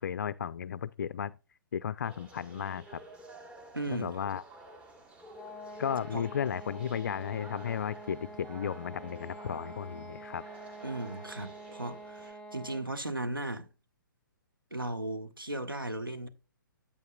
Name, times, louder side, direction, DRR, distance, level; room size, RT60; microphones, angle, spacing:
voice 1, 0.0-1.3 1.7-3.0 3.9-4.4 5.8-10.4, left 8 dB, 55° left, 0.4 m, -34 dB
sound 1, 2.0-12.3, right 1 dB, 10° right, 1.4 m, -51 dB
voice 2, 3.7-4.1 6.1-6.3 10.8-13.7 14.7-16.3, right 2 dB, 85° right, 1.3 m, -36 dB
sound 2, 5.3-13.0, right 2 dB, 10° left, 1.4 m, -47 dB
9.3 x 8.3 x 2.3 m
figure-of-eight pair, 125°, 11 cm